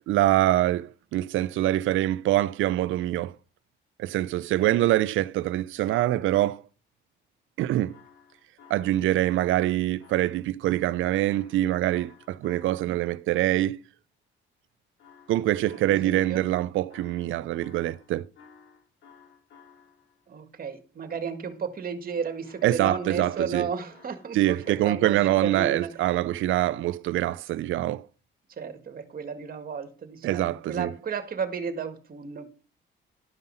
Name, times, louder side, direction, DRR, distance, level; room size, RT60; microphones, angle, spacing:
voice 1, 0.0-3.3 4.0-6.6 7.6-7.9 8.7-13.8 15.3-18.2 22.6-23.7 24.3-28.1 30.2-30.9, right 14 dB, 80° right, 0.5 m, -24 dB
sound 1, 7.9-13.1 15.0-20.2 22.4-25.7, left 6 dB, 70° left, 2.3 m, -55 dB
voice 2, 15.7-16.5 20.3-25.9 28.6-32.5, right 6 dB, 45° right, 1.7 m, -33 dB
12.0 x 5.5 x 5.5 m
cardioid pair, 90°, 20 cm